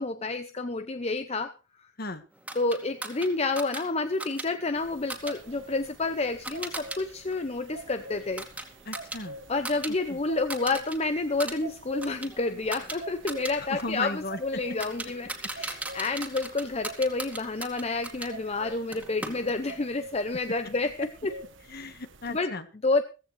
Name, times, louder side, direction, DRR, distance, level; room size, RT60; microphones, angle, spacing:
voice 1, 0.0-1.5 2.5-8.4 9.5-21.3 22.3-22.5 22.8-23.0, left 3 dB, 30° left, 9 dB, 0.7 m, -29 dB
sound 1, 2.5-7.0 7.3-9.9 10.2-11.0 11.3-18.3 18.9-19.8, right 2 dB, 5° right, 2.3 m, -39 dB
sound 2, 4.8-22.4, right 1 dB, 65° right, 1.2 m, -46 dB
voice 2, 8.8-9.4 10.1-10.2 13.5-14.6 15.9-16.0 21.7-22.6, left 2 dB, 50° left, 9 dB, 1.7 m, -36 dB
16.0 x 15.0 x 3.3 m, 0.32 s
head